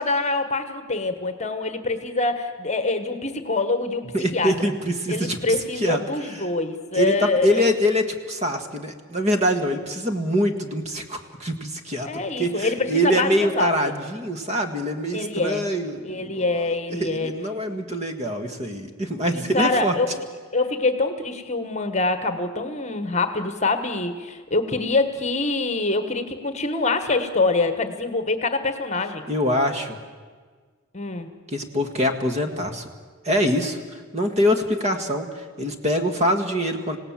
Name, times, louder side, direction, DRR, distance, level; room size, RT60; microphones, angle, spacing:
voice 1, 0.0-4.0 4.3-4.5 5.1-7.7 12.0-13.9 15.1-15.7 16.0-17.3 19.3-20.1 20.5-29.2 30.9-31.3, left 3 dB, 30° left, 9 dB, 1.4 m, -25 dB
voice 2, 4.1-5.4 5.8-6.0 6.4-6.5 7.0-12.1 12.4-16.5 17.0-19.9 29.3-30.0 31.5-32.9 33.2-37.0, equal, 30° right, 6 dB, 1.7 m, -24 dB
27.0 x 17.5 x 7.5 m, 1.5 s
head